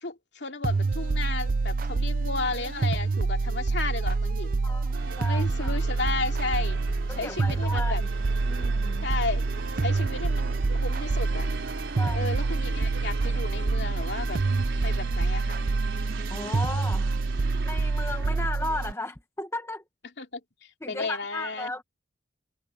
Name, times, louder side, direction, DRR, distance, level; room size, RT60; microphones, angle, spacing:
voice 1, 0.0-4.6 5.2-6.8 7.2-8.0 9.0-9.4 9.8-11.5 12.1-14.4 14.8-15.6 20.2-20.4 20.9-21.7, left 3 dB, 60° left, 2.8 m, -33 dB
sound 1, 0.6-18.9, right 3 dB, 45° right, 0.4 m, -27 dB
voice 2, 4.6-5.8 7.1-8.0 8.4-9.1 12.0-12.3 16.3-17.1 17.6-19.8 20.8-21.8, left 2 dB, 15° left, 1.1 m, -35 dB
sound 2, 4.9-18.5, right 2 dB, 90° right, 4.3 m, -39 dB
Aircraft, 7.5-18.5, right 2 dB, 70° right, 4.1 m, -42 dB
head